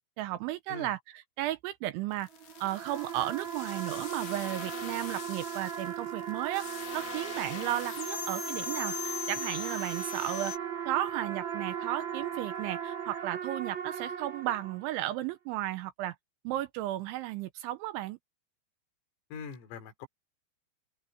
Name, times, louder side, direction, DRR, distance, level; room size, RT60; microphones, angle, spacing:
voice 1, 0.2-2.3 2.6-6.7 6.9-10.5 10.9-16.2 16.4-18.2, right 15 dB, 80° right, 2.9 m, -34 dB
sound 1, 2.1-10.6, left 9 dB, 60° left, 2.4 m, -41 dB
sound 2, 2.3-15.1, right 8 dB, 30° right, 2.4 m, -38 dB
voice 2, 19.3-20.1, left 6 dB, 80° left, 5.8 m, -42 dB
open air
omnidirectional pair, 5.9 m